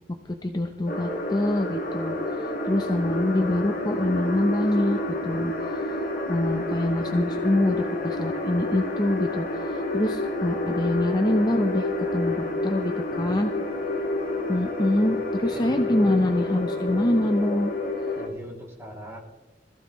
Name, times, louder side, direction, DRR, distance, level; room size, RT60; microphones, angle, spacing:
voice 1, 0.1-6.0 6.3-13.5 14.5-17.7, left 1 dB, 25° left, 5 dB, 0.8 m, -25 dB
sound 1, 0.9-18.3, left 2 dB, 50° left, 1.7 m, -29 dB
voice 2, 15.0-15.8 18.2-19.2, equal, 15° right, -2 dB, 2.8 m, -41 dB
21.0 x 15.0 x 3.1 m, 1.1 s
head